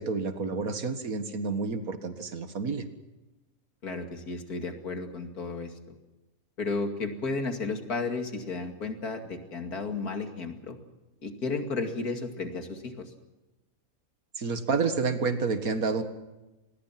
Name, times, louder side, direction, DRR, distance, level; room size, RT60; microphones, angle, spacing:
voice 1, 0.0-2.8 14.4-16.0, right 4 dB, 70° right, 9 dB, 2.2 m, -29 dB
voice 2, 3.8-5.7 6.6-10.8 11.2-13.1, left 3 dB, 85° left, 5 dB, 3.0 m, -33 dB
26.0 x 20.5 x 6.0 m, 1.1 s
omnidirectional pair, 1.5 m